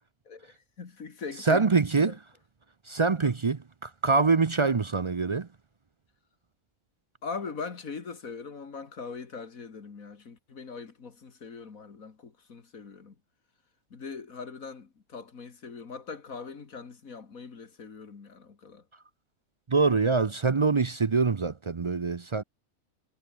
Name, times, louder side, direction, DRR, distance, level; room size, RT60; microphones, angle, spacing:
voice 1, 0.3-2.1 3.2-3.3 7.2-13.1 13.9-18.8, left 5 dB, 70° left, 2.5 m, -41 dB
voice 2, 1.4-2.2 2.9-5.5 19.7-22.4, right 4 dB, 45° right, 0.4 m, -24 dB
omnidirectional pair, 1.5 m